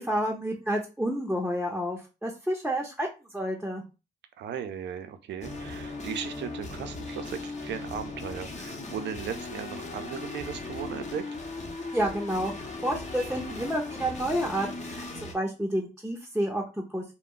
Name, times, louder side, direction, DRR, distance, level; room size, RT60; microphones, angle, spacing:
voice 1, 0.0-3.1 3.3-3.8 11.9-16.6 16.9-17.0, right 1 dB, 5° right, 0 dB, 0.7 m, -30 dB
voice 2, 4.4-11.2, right 8 dB, 75° right, 8 dB, 0.5 m, -37 dB
sound 1, 5.4-15.3, left 3 dB, 40° left, 0.8 m, -38 dB
2.3 x 2.1 x 3.7 m, 0.29 s
supercardioid pair, 55°, 18 cm